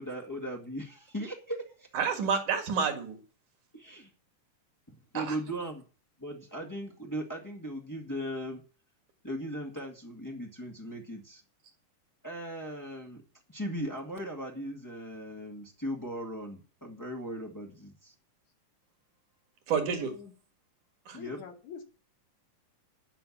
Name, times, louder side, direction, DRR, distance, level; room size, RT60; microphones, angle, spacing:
voice 1, 0.0-1.9 3.7-4.1 4.9-5.8 6.2-8.6 9.2-11.4 12.2-13.2 13.5-18.1 21.1-21.4, equal, 15° left, 0.7 m, -38 dB
voice 2, 1.9-3.2 5.1-5.4 19.7-20.1 21.1-21.2, right 6 dB, 65° right, 3.1 m, -29 dB
voice 3, 19.9-20.3 21.1-21.8, left 7 dB, 60° left, 3.0 m, -45 dB
11.5 x 5.7 x 8.6 m
omnidirectional pair, 3.8 m